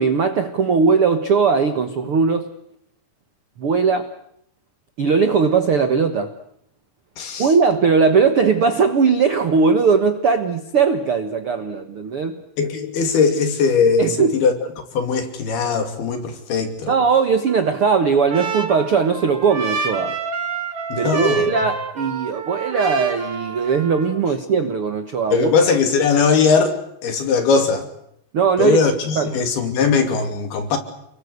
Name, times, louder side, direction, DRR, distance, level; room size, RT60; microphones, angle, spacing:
voice 1, 0.0-2.5 3.6-4.1 5.0-6.3 7.4-12.4 14.0-14.4 16.9-20.1 21.0-25.5 28.3-28.8 29.1-29.4, right 5 dB, 70° right, 8 dB, 1.3 m, -19 dB
voice 2, 7.2-7.5 12.6-14.5 14.9-16.9 20.9-21.5 25.3-27.9 28.6-30.8, left 5 dB, 65° left, 7 dB, 4.6 m, -19 dB
Trumpet, 17.5-24.2, right 5 dB, 45° right, 3.7 m, -29 dB
30.0 x 22.5 x 8.2 m, 0.73 s
omnidirectional pair, 5.0 m